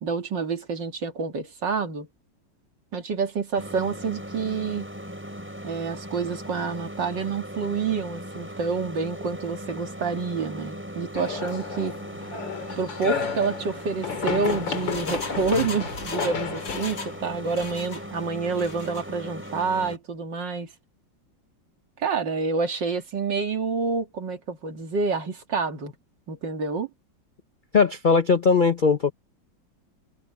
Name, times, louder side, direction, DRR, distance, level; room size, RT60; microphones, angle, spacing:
voice 1, 0.0-2.1 2.9-4.9 5.6-11.9 12.8-20.7 22.0-25.9 26.3-26.9, right 4 dB, 75° right, 2.8 m, -28 dB
sound 1, 3.6-20.0, equal, 5° right, 4.7 m, -39 dB
sound 2, 11.2-18.2, left 6 dB, 90° left, 2.8 m, -32 dB
Engine, 14.2-17.2 17.4-18.1 18.5-19.0 19.4-19.5, left 3 dB, 75° left, 3.7 m, -38 dB
voice 2, 27.7-29.1, left 5 dB, 55° left, 0.5 m, -19 dB
omnidirectional pair, 2.0 m